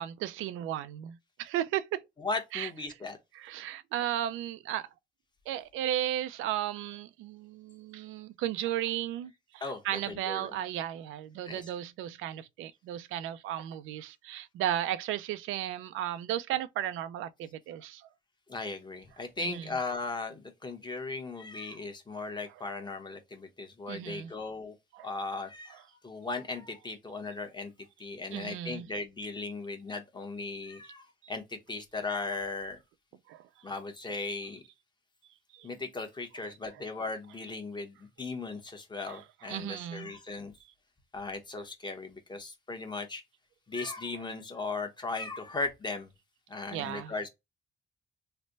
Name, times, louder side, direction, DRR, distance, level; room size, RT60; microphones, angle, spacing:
voice 1, 0.0-2.0 2.5-2.7 3.3-4.9 5.5-18.1 19.4-19.7 22.2-22.3 23.9-24.3 24.9-25.1 25.7-25.8 28.3-28.9 31.2-31.3 33.3-33.5 35.5-35.7 39.1-40.2 46.7-47.1, right 12 dB, 90° right, 0.4 m, -35 dB
voice 2, 2.2-3.2 9.6-10.6 11.5-11.6 18.5-24.7 25.0-27.7 28.0-32.8 33.6-34.6 35.6-40.5 41.1-43.2 43.7-46.1 46.5-47.3, left 3 dB, 20° left, 1.0 m, -37 dB
3.3 x 2.1 x 3.8 m
cardioid pair, 90°, 20 cm